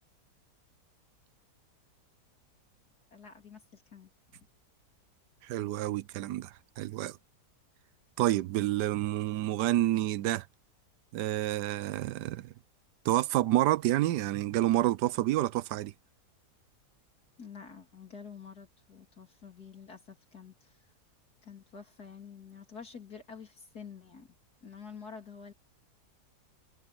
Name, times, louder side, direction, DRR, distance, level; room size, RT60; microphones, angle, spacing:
voice 1, 3.1-4.5 17.4-20.9 21.4-24.3 24.6-25.5, left 6 dB, 65° left, 4.0 m, -48 dB
voice 2, 5.4-7.2 8.2-10.5 11.1-12.5 13.0-15.9, right 14 dB, 90° right, 1.3 m, -29 dB
omnidirectional pair, 1.8 m